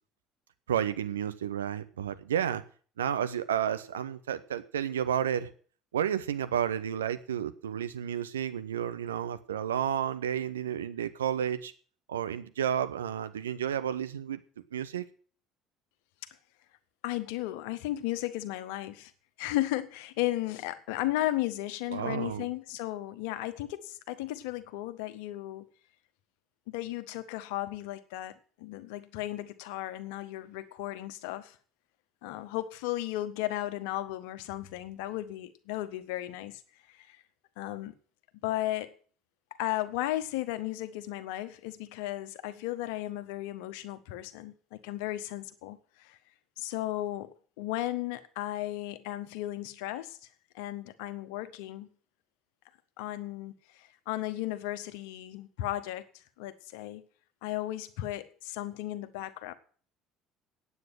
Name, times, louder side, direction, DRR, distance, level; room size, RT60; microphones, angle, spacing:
voice 1, 0.7-2.6 3.0-5.5 5.9-11.7 12.1-14.4 14.7-15.0 21.9-22.5, right 9 dB, 80° right, 0.9 m, -31 dB
voice 2, 17.0-19.1 19.4-25.7 26.7-31.5 32.2-36.6 36.9-37.2 37.6-37.9 38.4-38.9 39.6-46.2 46.6-50.2 50.5-51.9 53.0-53.5 53.8-56.0 56.4-57.0 57.4-59.5, left 15 dB, 65° left, 1.2 m, -35 dB
9.7 x 8.4 x 9.0 m
figure-of-eight pair, 60°, 0 cm